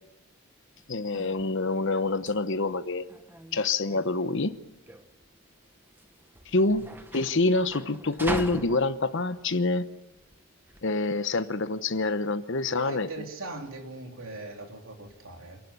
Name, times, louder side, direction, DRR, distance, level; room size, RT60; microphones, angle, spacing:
sound 1, 0.8-10.8, right 1 dB, 10° right, 1.2 m, -41 dB
voice 1, 0.9-3.1 3.5-4.6 6.5-6.9 7.1-9.9 10.8-13.1, left 3 dB, 55° left, 12 dB, 1.0 m, -26 dB
voice 2, 12.7-15.6, right 2 dB, 65° right, 2 dB, 3.3 m, -40 dB
27.0 x 11.5 x 9.8 m, 0.99 s
head